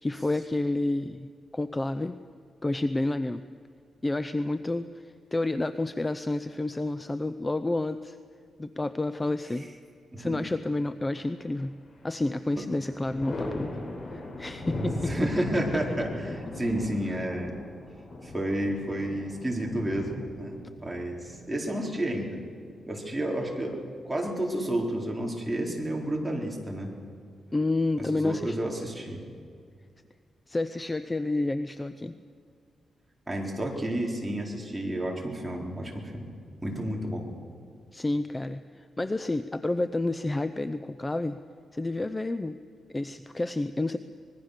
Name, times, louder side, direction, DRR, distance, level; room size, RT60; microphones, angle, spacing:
voice 1, 0.0-2.2 2.6-3.4 4.0-8.2 8.6-9.7 10.2-11.8 12.0-13.7 14.4-15.3 27.5-28.6 30.5-32.1 37.9-41.4 41.7-42.6 42.9-44.0, left 2 dB, 15° left, 11 dB, 0.6 m, -29 dB
Thunder, 11.4-12.1 12.5-22.1 23.6-24.4, left 1 dB, 50° left, 7.5 m, -38 dB
voice 2, 15.1-17.5 18.2-22.4 22.9-23.8 24.0-26.9 28.0-29.2 33.3-36.3 36.6-37.3, right 1 dB, 10° right, -1 dB, 4.2 m, -31 dB
25.0 x 21.0 x 6.7 m, 2.2 s
cardioid pair, 120°, 0 cm